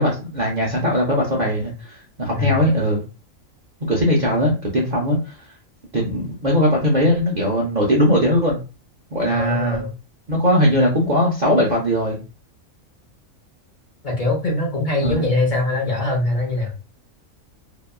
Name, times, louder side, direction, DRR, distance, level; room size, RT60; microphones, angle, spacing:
voice 1, 0.0-3.0 3.8-5.3 5.9-8.6 9.1-9.8 10.3-12.2 15.0-15.3, equal, 50° right, -3 dB, 0.5 m, -19 dB
voice 2, 9.3-9.9 14.0-16.7, left 2 dB, 45° left, -2 dB, 0.7 m, -22 dB
2.8 x 2.2 x 2.2 m, 0.31 s
omnidirectional pair, 1.4 m